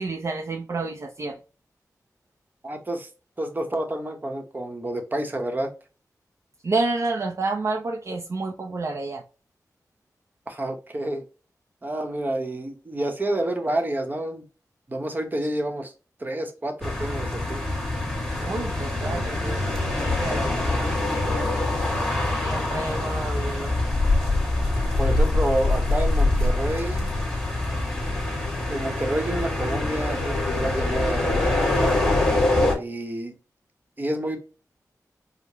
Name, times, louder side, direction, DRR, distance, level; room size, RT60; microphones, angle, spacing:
voice 1, 0.0-1.4 6.6-9.2 18.4-21.4 22.4-23.7, right 3 dB, 50° right, 0.5 m, -30 dB
voice 2, 2.6-3.1 3.4-5.7 10.5-11.2 11.8-14.4 14.9-15.9 16.2-17.6 25.0-27.1 28.7-32.0 32.8-33.3 34.0-34.4, right 1 dB, 30° right, 0.8 m, -29 dB
sound 1, 16.8-32.8, left 2 dB, 10° left, 1.6 m, -24 dB
4.7 x 2.1 x 2.7 m
wide cardioid pair, 95°, 6 cm